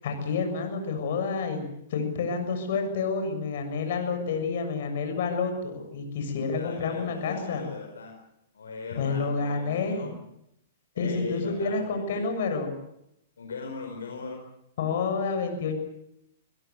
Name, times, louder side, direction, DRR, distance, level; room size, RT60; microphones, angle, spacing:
voice 1, 0.0-7.6 9.0-10.1 11.0-12.8 14.8-15.8, left 4 dB, 60° left, 6 dB, 7.0 m, -29 dB
voice 2, 6.4-8.1 8.5-10.2 10.9-12.3 13.4-14.4, left 5 dB, 80° left, 3 dB, 4.9 m, -39 dB
26.0 x 17.0 x 8.2 m, 0.79 s
hypercardioid pair, 115°, 0 cm